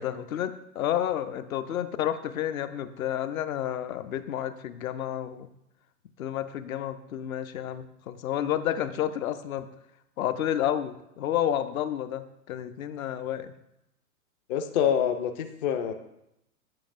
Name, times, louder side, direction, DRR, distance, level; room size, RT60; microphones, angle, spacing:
voice 1, 0.0-5.5 6.2-9.7 10.2-13.5, left 11 dB, 60° left, 10 dB, 0.7 m, -30 dB
voice 2, 14.5-15.9, left 8 dB, 30° left, 6 dB, 0.4 m, -26 dB
8.4 x 7.5 x 2.5 m, 0.83 s
hypercardioid pair, 110°, 46 cm